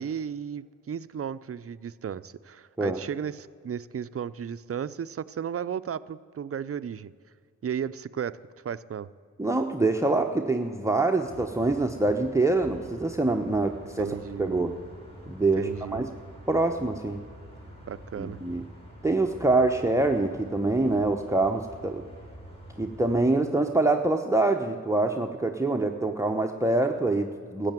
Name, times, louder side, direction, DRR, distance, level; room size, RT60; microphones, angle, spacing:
voice 1, 0.0-7.1 7.6-8.4 8.6-9.1 14.0-14.6 15.4-16.0 17.8-18.4, right 8 dB, 50° right, 14 dB, 0.5 m, -34 dB
voice 2, 9.4-14.8 15.3-16.1 16.5-17.2 18.2-18.6 19.0-22.0 22.8-27.7, right 2 dB, 10° right, 6 dB, 0.9 m, -25 dB
sound 1, 11.2-23.2, equal, 20° left, 4.2 m, -47 dB
13.5 x 8.4 x 9.1 m, 2.2 s
cardioid pair, 50°, 31 cm